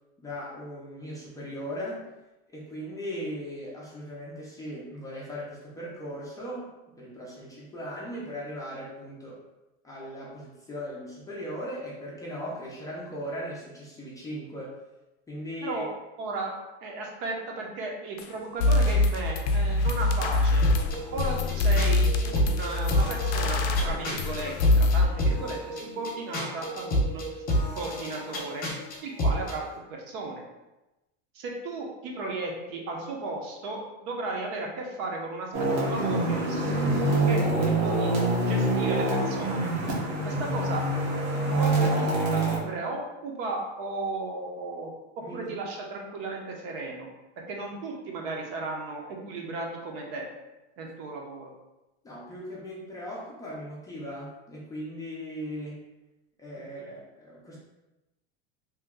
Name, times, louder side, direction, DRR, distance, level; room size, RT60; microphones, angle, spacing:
voice 1, 0.2-2.0 2.5-9.4 9.8-14.8 15.3-15.8 45.2-45.5 52.0-55.8 56.4-57.6, equal, 10° left, -6 dB, 0.5 m, -38 dB
voice 2, 16.2-16.5 16.8-20.6 21.1-27.4 27.7-28.6 29.0-29.6 29.9-30.4 31.3-38.1 38.4-39.7 40.2-40.8 41.3-44.9 45.3-47.1 47.5-50.3 50.8-51.5 56.6-56.9, right 3 dB, 55° right, 0 dB, 0.8 m, -35 dB
sound 1, 18.2-18.3 18.6-25.0, left 2 dB, 85° left, 0.5 m, -24 dB
sound 2, 20.6-29.6, equal, 25° left, 0.9 m, -30 dB
sound 3, 35.5-42.6, right 2 dB, 90° right, 1.3 m, -25 dB
2.9 x 2.2 x 3.5 m, 1.0 s
supercardioid pair, 140°, 34 cm